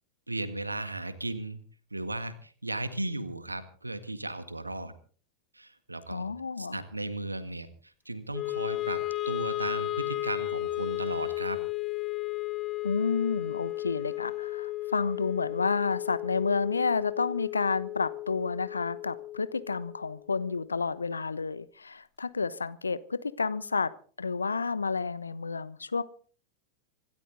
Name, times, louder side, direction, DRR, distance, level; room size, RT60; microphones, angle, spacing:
voice 1, 0.3-1.6 1.9-4.9 5.5-6.3 6.6-11.6, right 2 dB, 85° right, 1.8 m, -36 dB
voice 2, 6.1-6.8 12.8-23.9 24.2-26.0, left 4 dB, 75° left, 1.0 m, -30 dB
Wind instrument woodwind instrument, 8.3-20.6, left 16 dB, 30° left, 1.1 m, -34 dB
26.0 x 12.5 x 4.0 m
figure-of-eight pair, 90°, 0 cm